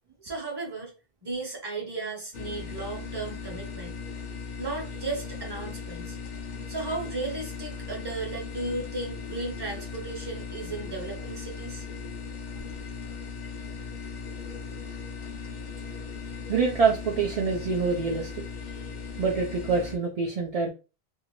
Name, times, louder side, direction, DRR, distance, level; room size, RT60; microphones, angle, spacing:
voice 1, 0.2-0.9 1.2-4.0 4.6-6.2 6.7-11.8, right 3 dB, 25° right, 1 dB, 0.8 m, -35 dB
sound 1, 2.3-20.0, left 5 dB, 50° left, 0.7 m, -38 dB
voice 2, 16.5-18.4 19.2-20.7, right 5 dB, 50° right, 0 dB, 0.5 m, -26 dB
2.7 x 2.4 x 3.0 m, 0.31 s
omnidirectional pair, 1.0 m